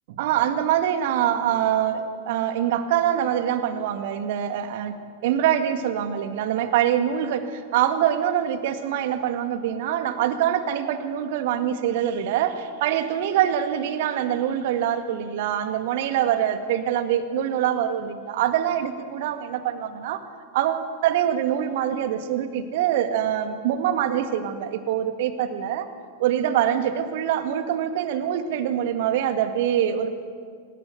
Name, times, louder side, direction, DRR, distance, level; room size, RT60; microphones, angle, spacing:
voice 1, 0.2-20.2 20.5-25.9 26.2-30.1, right 10 dB, 50° right, 9 dB, 2.0 m, -24 dB
25.5 x 19.5 x 8.1 m, 2.1 s
figure-of-eight pair, 90°, 0 cm